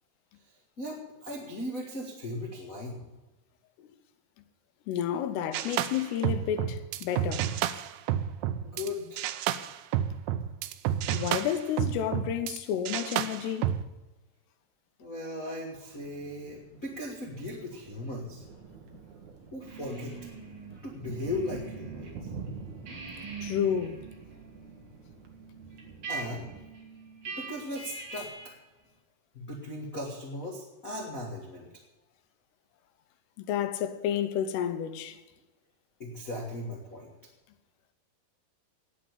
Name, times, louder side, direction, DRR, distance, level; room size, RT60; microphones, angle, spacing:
voice 1, 0.8-3.0 8.6-9.3 15.0-18.4 19.5-20.2 20.7-22.2 26.1-26.5 27.2-28.5 29.3-31.7 36.0-37.1, left 1 dB, 45° left, 1.0 m, -37 dB
voice 2, 4.9-7.5 11.1-13.7 23.4-24.0 33.5-35.2, left 9 dB, 85° left, 2.9 m, -30 dB
sound 1, 5.5-8.9 9.2-12.6 12.9-13.8, right 11 dB, 85° right, 2.0 m, -30 dB
sound 2, 15.9-26.6, right 5 dB, 60° right, 2.3 m, -47 dB
sound 3, 19.7-22.1 22.5-28.6, right 4 dB, 35° right, 3.0 m, -43 dB
9.4 x 9.1 x 9.6 m
omnidirectional pair, 4.7 m